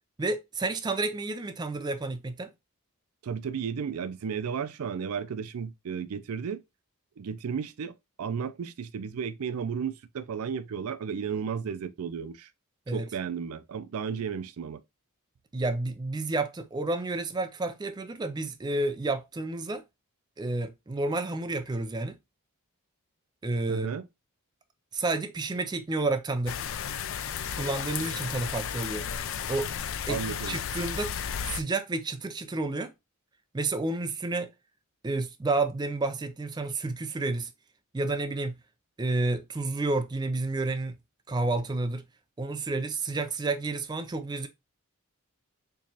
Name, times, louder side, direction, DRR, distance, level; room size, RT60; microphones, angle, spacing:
voice 1, 0.2-2.5 12.9-13.1 15.5-19.8 20.4-22.2 23.4-23.9 24.9-26.6 27.5-29.1 29.5-29.7 30.1-31.1 31.4-32.9 33.5-34.5 35.0-37.5 37.9-38.6 39.0-41.0 41.3-42.0 42.4-44.5, right 2 dB, 20° right, 0.4 m, -30 dB
voice 2, 3.2-6.6 7.2-12.5 12.9-14.8 23.7-24.1 30.1-30.6, right 6 dB, 85° right, 0.4 m, -33 dB
sound 1, 26.5-31.6, left 8 dB, 60° left, 0.4 m, -33 dB
4.5 x 3.0 x 2.7 m
head